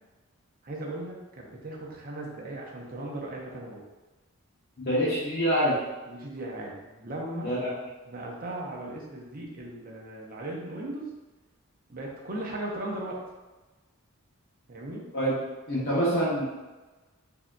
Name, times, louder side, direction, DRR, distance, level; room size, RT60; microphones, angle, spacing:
voice 1, 0.6-3.8 6.1-7.5 8.1-11.1 11.9-13.2 14.7-15.1, right 1 dB, 40° right, -2 dB, 0.7 m, -37 dB
voice 2, 4.8-5.8 7.4-7.8 15.1-15.4 15.7-16.4, equal, 50° left, -9 dB, 0.9 m, -26 dB
4.9 x 2.8 x 2.2 m, 1.2 s
head